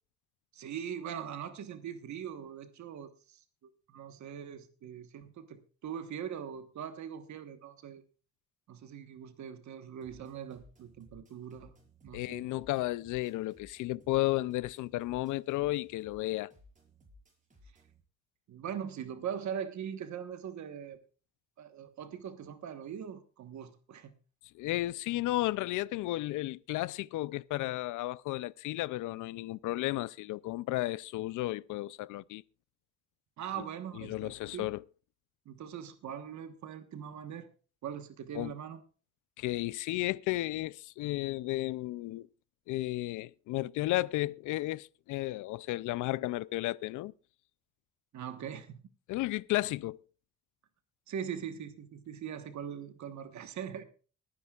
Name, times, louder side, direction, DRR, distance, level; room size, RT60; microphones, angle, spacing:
voice 1, 0.5-8.0 8.7-11.7 12.0-12.5 18.5-21.0 21.6-24.1 33.4-34.7 35.4-37.5 37.8-38.8 48.1-48.8 51.1-53.8, right 8 dB, 70° right, 1.3 m, -41 dB
sound 1, 10.0-18.0, left 1 dB, 25° right, 5.2 m, -61 dB
voice 2, 12.1-16.5 24.5-32.4 33.6-33.7 34.0-34.8 38.3-38.5 39.4-42.3 42.7-47.1 49.1-50.0, left 17 dB, 85° left, 0.5 m, -33 dB
24.5 x 9.7 x 2.4 m
cardioid pair, 90°, 30 cm